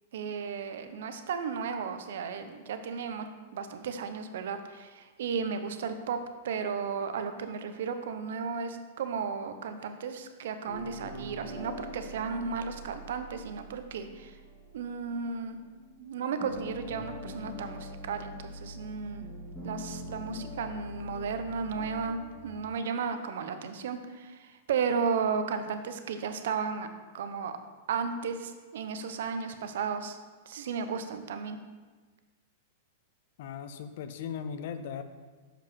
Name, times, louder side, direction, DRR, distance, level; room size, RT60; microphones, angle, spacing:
voice 1, 0.1-6.2 6.4-14.4 14.7-15.6 16.0-19.3 19.6-26.9 27.1-27.5 27.9-30.2 30.5-31.6, right 6 dB, 75° right, 9 dB, 0.7 m, -34 dB
sound 1, 10.7-15.9 16.2-22.5, left 1 dB, 10° left, 1.9 m, -43 dB
voice 2, 33.4-35.0, left 7 dB, 60° left, 10 dB, 0.6 m, -38 dB
7.0 x 5.5 x 5.2 m, 1.4 s
supercardioid pair, 150°, 0 cm